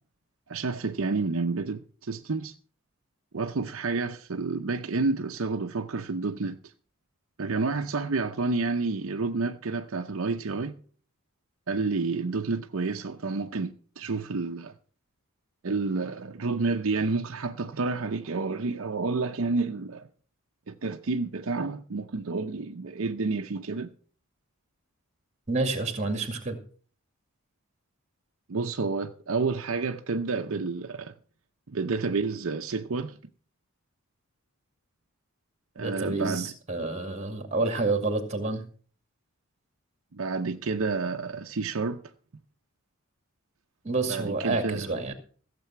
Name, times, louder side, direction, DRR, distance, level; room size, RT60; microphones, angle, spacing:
voice 1, 0.5-2.5 3.3-6.7 7.4-10.8 11.7-14.7 15.6-20.1 20.7-23.9 28.5-31.1 31.7-33.2 35.8-36.5 40.1-42.0 44.1-44.8, right 3 dB, 65° right, 0.7 m, -29 dB
voice 2, 25.5-26.6 35.8-38.6 43.8-45.1, right 3 dB, 30° right, 2.2 m, -29 dB
15.5 x 7.6 x 5.8 m
head